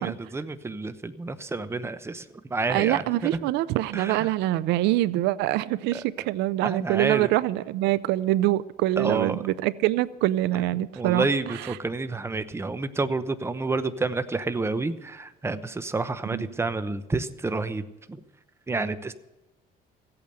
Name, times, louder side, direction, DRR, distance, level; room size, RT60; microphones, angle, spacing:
voice 1, 0.0-3.0 3.3-3.4 3.9-4.3 5.9-6.0 6.6-7.3 9.0-9.4 11.0-18.2 18.7-19.1, right 3 dB, 15° right, 0.9 m, -29 dB
voice 2, 2.7-11.3 16.3-16.4, right 15 dB, 90° right, 0.5 m, -24 dB
15.5 x 8.6 x 7.7 m
cardioid pair, 110°, 17 cm